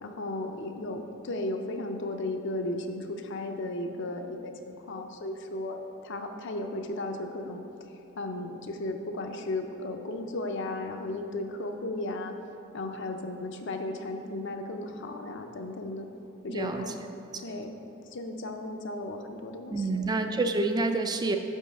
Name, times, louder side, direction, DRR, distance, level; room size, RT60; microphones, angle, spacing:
voice 1, 0.0-7.6 8.1-12.3 12.7-16.1 16.4-17.0 17.4-17.7 18.1-20.1, left 2 dB, 55° left, 5 dB, 0.5 m, -35 dB
voice 2, 16.5-16.9 19.7-21.4, right 3 dB, 20° right, 6 dB, 0.3 m, -28 dB
5.4 x 5.4 x 6.4 m, 3.0 s
head